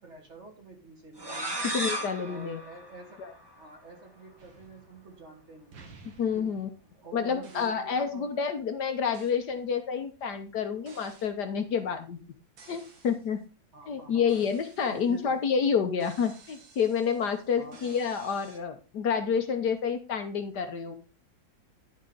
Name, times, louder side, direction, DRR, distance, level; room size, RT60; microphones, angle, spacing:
voice 1, 0.0-1.7 2.2-3.2 3.6-5.8 6.3-6.6 6.9-8.3 13.7-14.4 14.9-15.4 17.6-17.9, right 3 dB, 35° right, 1 dB, 2.4 m, -48 dB
sound 1, 1.2-3.8, right 1 dB, 15° right, 1.2 m, -35 dB
voice 2, 1.7-2.6 3.2-3.3 6.2-6.7 7.1-12.2 12.7-13.4 13.9-21.0, left 6 dB, 65° left, 7 dB, 1.5 m, -29 dB
sound 2, 4.4-5.3 5.7-7.0 7.4-7.9 9.1-9.4 10.8-11.4 12.6-13.3 14.3-15.4 16.0-18.6, right 4 dB, 80° right, 2.3 m, -54 dB
11.5 x 4.4 x 5.3 m, 0.34 s
omnidirectional pair, 2.0 m